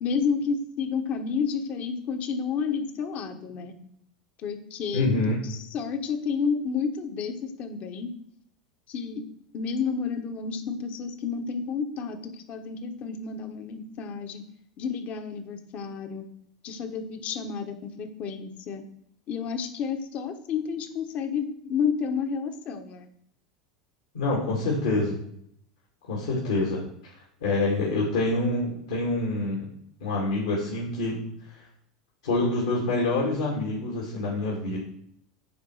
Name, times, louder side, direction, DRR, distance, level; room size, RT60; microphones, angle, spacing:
voice 1, 0.0-3.7 4.4-5.1 5.4-8.1 8.9-9.2 9.5-14.4 14.8-16.2 16.6-18.8 19.3-23.1, left 6 dB, 45° left, 7 dB, 1.3 m, -30 dB
voice 2, 4.9-5.4 24.1-25.2 26.1-27.1 27.4-29.7 30.0-31.2 31.5-31.6 32.2-34.8, left 2 dB, 70° left, -3 dB, 2.5 m, -26 dB
9.3 x 4.8 x 6.4 m, 0.72 s
figure-of-eight pair, 80°, 3 cm